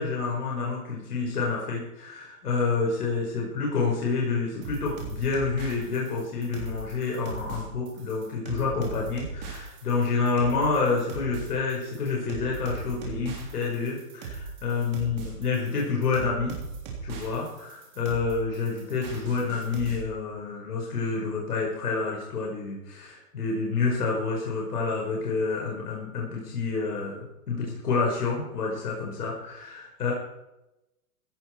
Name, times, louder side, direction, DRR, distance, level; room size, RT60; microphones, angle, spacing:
voice 1, 0.0-16.6 17.0-30.1, left 4 dB, 70° left, -3 dB, 5.4 m, -28 dB
sound 1, 4.6-20.0, right 4 dB, 25° right, 3.5 m, -39 dB
16.0 x 11.5 x 4.7 m, 0.92 s
hypercardioid pair, 180°, 48 cm